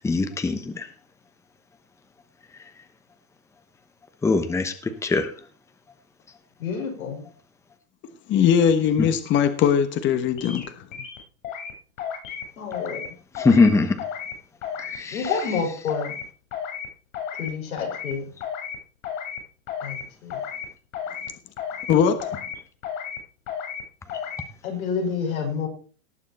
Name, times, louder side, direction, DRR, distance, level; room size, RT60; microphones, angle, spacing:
voice 1, 0.0-0.9 4.2-5.3 9.0-9.1 13.4-14.0 14.8-15.3, left 3 dB, 5° left, 9 dB, 1.0 m, -21 dB
voice 2, 6.6-7.3 12.6-13.0 15.1-16.1 17.4-18.2 19.8-20.4 24.6-25.7, left 5 dB, 90° left, 2 dB, 5.5 m, -29 dB
voice 3, 8.3-10.8 21.9-22.3, left 8 dB, 30° left, 10 dB, 1.2 m, -20 dB
sound 1, 10.4-10.6 10.9-11.7 12.0-12.4 12.7-13.1 13.3-13.7 14.0-14.3 14.6-15.0 15.2-15.6 15.9-16.2 16.5-16.9 17.1-17.5 17.8-18.1 18.4-18.8 19.0-19.4 19.7-20.0 20.3-20.7 20.9-21.3 21.6-21.9 22.2-22.6 22.8-23.2 23.5-23.8 24.1-24.4, left 8 dB, 70° left, 7.4 m, -33 dB
18.5 x 7.3 x 4.3 m, 0.39 s
hypercardioid pair, 135°, 41 cm